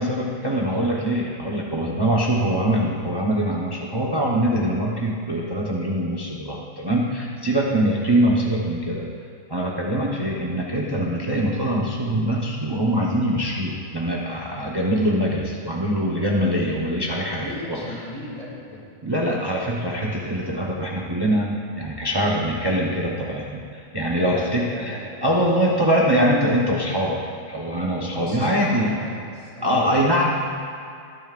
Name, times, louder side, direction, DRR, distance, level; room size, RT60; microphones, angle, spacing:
voice 1, 0.0-9.1 9.5-18.0 19.0-29.0 29.6-30.3, equal, 20° right, -4 dB, 0.9 m, -23 dB
voice 2, 17.3-18.8 24.2-25.4 28.1-30.1, left 2 dB, 35° left, -5 dB, 2.8 m, -36 dB
21.5 x 11.0 x 2.5 m, 2.3 s
omnidirectional pair, 1.2 m